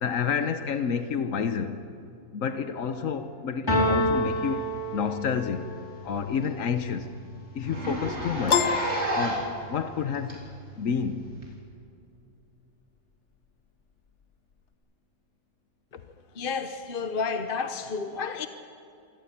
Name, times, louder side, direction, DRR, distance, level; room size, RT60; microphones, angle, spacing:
voice 1, 0.0-1.8 2.3-5.7 6.0-7.1 7.5-8.7 9.1-10.4 10.8-11.3 15.9-16.0, left 6 dB, 80° left, 1.3 m, -29 dB
sound 1, 3.7-5.6, equal, 20° left, 3.3 m, -26 dB
Zipper (clothing), 5.0-5.1 5.5-5.6 6.0-6.1 6.4-6.5 6.8-6.9 7.6-9.6 10.3-10.4 11.4-11.5, right 1 dB, 55° right, 4.4 m, -30 dB
Piano, 8.5-10.0, left 6 dB, 65° left, 1.3 m, -27 dB
voice 2, 16.4-18.5, left 5 dB, 45° left, 1.0 m, -31 dB
26.0 x 13.5 x 8.7 m
omnidirectional pair, 1.4 m